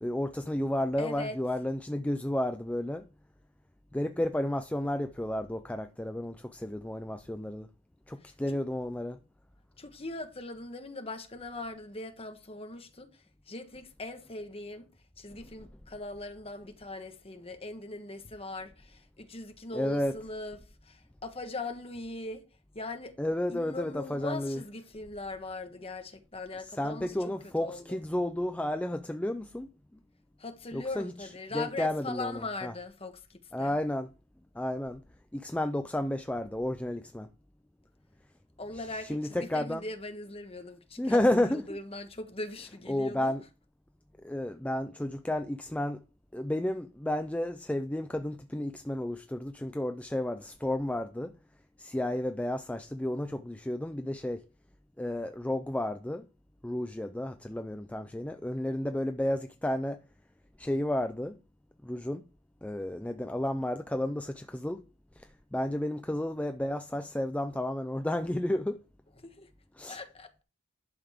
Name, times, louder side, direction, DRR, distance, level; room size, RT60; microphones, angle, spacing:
voice 1, 0.0-3.1 3.9-7.7 8.1-9.2 19.7-20.2 23.2-24.6 26.7-29.7 30.7-32.7 33.5-34.1 34.5-35.0 35.3-37.3 39.0-39.8 41.0-41.8 42.9-43.4 44.2-46.0 46.3-51.3 51.8-54.4 55.0-56.3 56.6-60.0 60.6-61.4 61.8-62.2 62.6-64.8 65.2-68.8 69.8-70.0, left 1 dB, 5° left, 0.4 m, -32 dB
voice 2, 1.0-1.4 8.2-8.6 9.8-14.9 15.2-22.4 22.7-23.1 23.5-27.3 27.6-28.0 30.4-33.8 38.6-43.3 69.2-69.5 69.9-70.3, left 2 dB, 30° left, 1.3 m, -40 dB
11.0 x 6.8 x 3.6 m
head